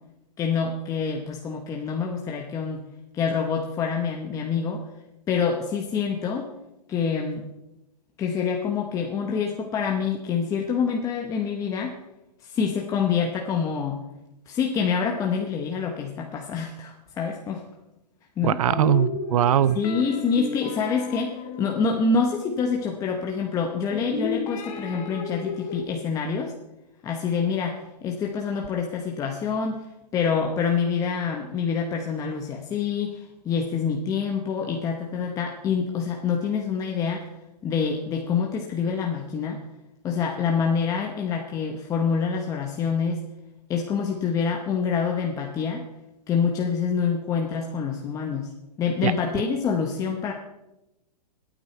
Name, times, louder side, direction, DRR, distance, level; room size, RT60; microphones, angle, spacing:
voice 1, 0.4-2.9 3.1-4.8 5.3-6.5 6.9-7.5 8.2-11.9 12.4-14.0 14.5-17.6 18.4-18.6 19.7-26.5 27.0-29.8 30.1-37.3 37.6-39.6 40.0-43.2 43.7-45.9 46.3-48.5 48.8-50.3, left 6 dB, 15° left, 1 dB, 0.9 m, -26 dB
voice 2, 18.4-19.8 49.0-49.1, right 10 dB, 55° right, 17 dB, 0.5 m, -21 dB
sound 1, 18.7-22.9 23.9-25.8, left 6 dB, 50° left, 2.5 m, -33 dB
20.5 x 9.0 x 4.4 m, 0.94 s
hypercardioid pair, 155°, 21 cm